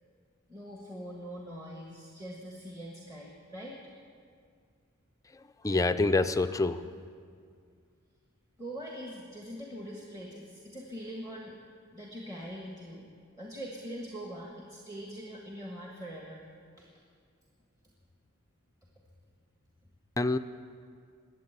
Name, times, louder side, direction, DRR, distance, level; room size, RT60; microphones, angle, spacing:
voice 1, 0.5-3.8 8.6-11.6 11.9-13.0 13.4-16.5 16.8-16.9, equal, 15° right, -2 dB, 1.5 m, -42 dB
voice 2, 5.6-6.8 20.2-20.4, left 2 dB, 15° left, 10 dB, 0.4 m, -26 dB
21.0 x 8.3 x 8.1 m, 2.2 s
head